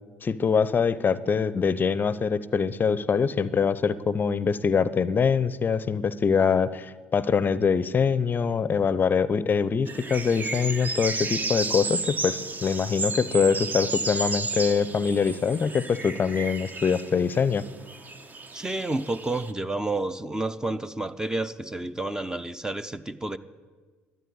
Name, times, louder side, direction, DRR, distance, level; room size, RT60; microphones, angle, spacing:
voice 1, 0.2-17.6, left 6 dB, 35° left, 18 dB, 0.6 m, -24 dB
sound 1, 9.9-19.5, right 3 dB, 30° right, 1.1 m, -33 dB
voice 2, 18.5-23.4, right 2 dB, 10° right, 13 dB, 0.7 m, -30 dB
12.5 x 9.2 x 9.9 m, 1.4 s
hypercardioid pair, 60°, 6 cm